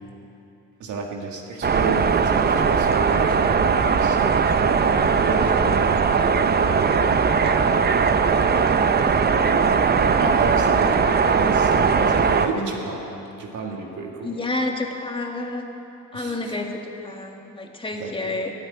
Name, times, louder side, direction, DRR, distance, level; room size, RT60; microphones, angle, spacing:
voice 1, 0.8-4.2 4.8-6.3 9.0-9.9 10.2-14.3 16.1-16.5 18.0-18.4, right 4 dB, 75° right, 0 dB, 1.9 m, -32 dB
sound 1, 1.6-12.5, right 5 dB, 35° right, 0.7 m, -19 dB
voice 2, 7.0-8.4 14.2-15.7 16.1-18.5, left 2 dB, 15° left, 2 dB, 1.8 m, -30 dB
13.5 x 8.8 x 9.4 m, 2.9 s
cardioid pair, 90°, 30 cm